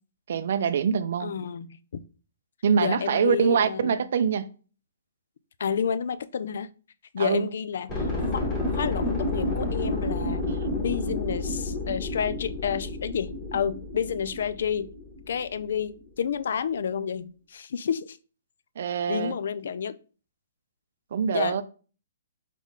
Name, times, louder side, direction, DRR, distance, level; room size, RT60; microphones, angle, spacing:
voice 1, 0.3-1.3 2.6-4.5 7.2-7.5 10.4-10.8 18.8-19.4 21.1-21.6, right 7 dB, 55° right, 0.4 m, -25 dB
voice 2, 1.2-2.0 2.8-4.0 5.6-6.7 7.1-8.5 8.7-10.4 10.8-14.9 15.3-18.2 19.1-20.0 21.3-21.6, left 7 dB, 60° left, 0.3 m, -30 dB
sound 1, 7.9-15.7 16.0-16.1, left 2 dB, 15° left, 1.0 m, -30 dB
4.1 x 3.6 x 3.7 m
hypercardioid pair, 175°, 0 cm